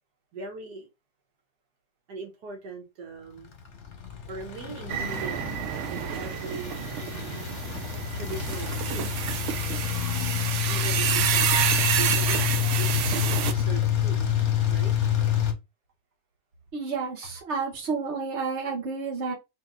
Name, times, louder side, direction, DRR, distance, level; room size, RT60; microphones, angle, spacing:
voice 1, 0.3-0.9 2.1-3.5 4.3-5.4 5.9-6.9 8.1-9.1 10.7-11.5 12.0-12.5 12.8-14.2 14.7-14.9, right 4 dB, 90° right, 1.7 m, -39 dB
sound 1, 3.6-15.5, left 10 dB, 55° left, 1.1 m, -28 dB
sound 2, 4.9-13.5, right 9 dB, 70° right, 0.7 m, -29 dB
voice 2, 16.7-19.3, right 4 dB, 45° right, 1.5 m, -30 dB
3.5 x 3.1 x 3.6 m
omnidirectional pair, 1.7 m